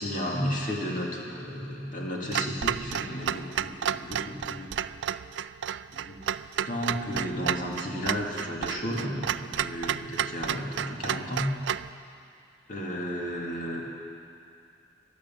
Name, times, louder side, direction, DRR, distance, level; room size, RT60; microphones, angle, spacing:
voice 1, 0.0-4.7 5.9-6.3 6.6-11.5 12.7-13.8, equal, 45° left, -2 dB, 2.1 m, -33 dB
Clock, 2.3-11.9, right 9 dB, 75° right, 0.3 m, -32 dB
14.0 x 11.5 x 7.4 m, 2.4 s
head